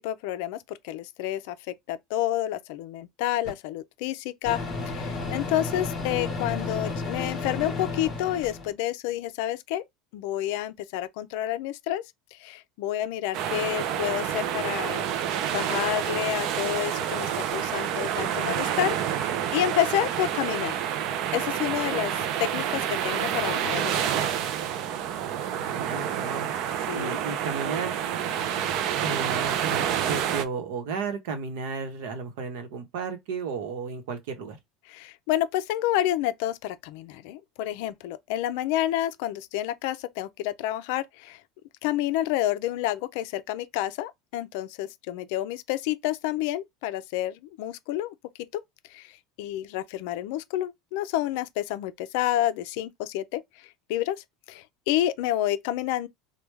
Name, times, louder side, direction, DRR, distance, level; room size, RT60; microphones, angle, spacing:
voice 1, 0.0-4.6 4.9-9.8 10.1-12.0 12.3-15.1 15.5-20.8 21.3-24.2 26.9-27.2 34.9-41.4 41.8-48.1 48.5-48.6 48.9-49.1 49.4-56.1, left 13 dB, 65° left, 0.4 m, -29 dB
Microwave oven, 3.5-3.6 4.5-8.7, left 3 dB, 25° left, 1.6 m, -32 dB
sound 1, 13.3-30.4, right 9 dB, 45° right, 0.4 m, -28 dB
voice 2, 25.6-26.5 26.9-28.4 29.0-34.6, right 5 dB, 70° right, 0.9 m, -34 dB
3.2 x 2.2 x 3.4 m
cardioid pair, 170°, 0 cm